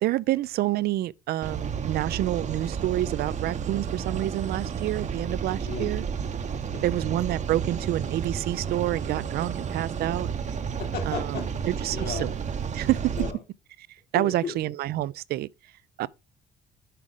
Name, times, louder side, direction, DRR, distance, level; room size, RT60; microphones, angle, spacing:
voice 1, 0.0-6.0 6.8-10.3 11.1-11.4 11.8-12.3 12.7-13.1 14.1-15.5 16.0-16.1, right 14 dB, 65° right, 0.4 m, -28 dB
sound 1, 1.4-13.3, right 7 dB, 40° right, 0.9 m, -31 dB
voice 2, 6.7-7.0 10.6-12.3 13.1-13.4 14.1-14.6, left 6 dB, 65° left, 2.5 m, -36 dB
7.6 x 4.9 x 3.7 m
supercardioid pair, 70°, 18 cm